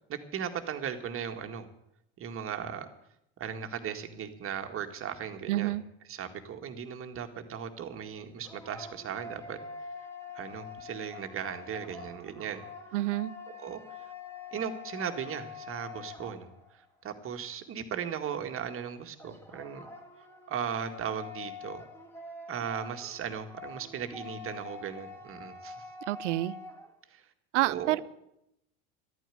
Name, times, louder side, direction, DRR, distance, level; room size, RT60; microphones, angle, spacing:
voice 1, 0.1-1.7 2.2-2.9 3.4-5.7 6.1-9.6 10.3-12.6 13.5-13.8 14.5-19.9 20.5-21.8 22.5-25.8 27.1-27.2 27.6-28.0, right 8 dB, 35° right, 6 dB, 2.0 m, -37 dB
voice 2, 5.5-5.8 12.9-13.3 26.1-26.6 27.5-28.0, right 16 dB, 85° right, 18 dB, 0.7 m, -28 dB
sound 1, 8.2-16.9 19.2-26.9, left 4 dB, 5° left, 2.2 m, -46 dB
13.0 x 9.3 x 9.4 m, 0.81 s
hypercardioid pair, 95°, 35 cm